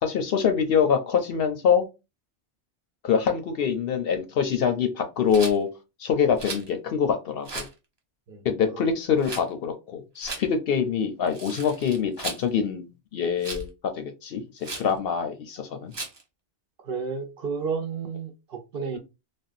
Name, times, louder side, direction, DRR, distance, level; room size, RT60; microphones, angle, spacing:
voice 1, 0.0-1.9 3.0-5.7 6.0-7.7 8.4-15.9, left 7 dB, 65° left, 0.7 m, -25 dB
Rattle, 5.3-5.6 6.4-6.7 7.4-7.7 9.2-9.4 10.2-10.4 11.3-12.4 13.4-13.7 14.6-14.9 15.9-16.2, right 3 dB, 30° right, 0.6 m, -36 dB
voice 2, 16.8-19.0, right 5 dB, 60° right, 0.8 m, -31 dB
3.4 x 2.2 x 2.5 m
omnidirectional pair, 1.2 m